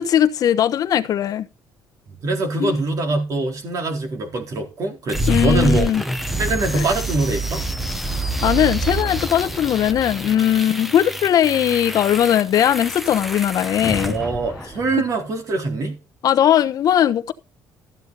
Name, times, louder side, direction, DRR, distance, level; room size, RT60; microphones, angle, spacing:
voice 1, 0.0-1.5 2.6-2.8 5.3-6.0 6.7-6.8 8.1-14.1 16.2-17.3, left 10 dB, 55° left, 1.1 m, -19 dB
voice 2, 2.2-5.9 6.4-7.6 14.0-16.0, right 2 dB, 50° right, 4.1 m, -23 dB
sound 1, 5.1-15.1, right 1 dB, ahead, 1.2 m, -27 dB
14.0 x 9.0 x 4.1 m
cardioid pair, 115°, 7 cm